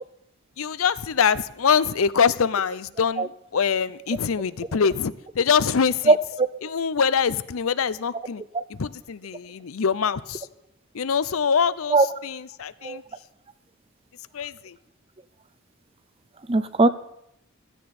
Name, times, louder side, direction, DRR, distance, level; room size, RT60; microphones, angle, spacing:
voice 1, 0.6-6.1 6.6-8.4 8.7-10.5 10.9-12.0 12.2-13.0 14.3-14.8, left 6 dB, 90° left, 17 dB, 0.6 m, -24 dB
voice 2, 6.1-6.5 8.5-8.6 11.9-12.1 12.8-13.0 16.5-16.9, right 3 dB, 25° right, 14 dB, 0.6 m, -19 dB
16.0 x 13.5 x 4.3 m, 0.79 s
head